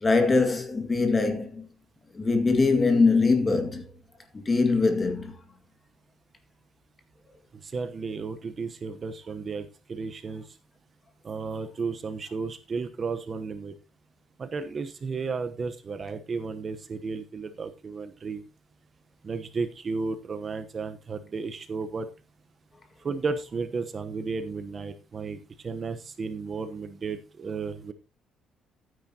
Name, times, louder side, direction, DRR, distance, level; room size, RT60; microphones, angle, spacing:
voice 1, 0.0-1.7 2.1-3.8 4.3-5.4, left 3 dB, 25° left, 2.0 m, -22 dB
voice 2, 7.6-10.5 11.2-13.7 14.4-18.4 19.2-22.1 23.0-27.9, right 4 dB, 35° right, 1.0 m, -33 dB
14.5 x 9.5 x 2.9 m
cardioid pair, 130°, 0 cm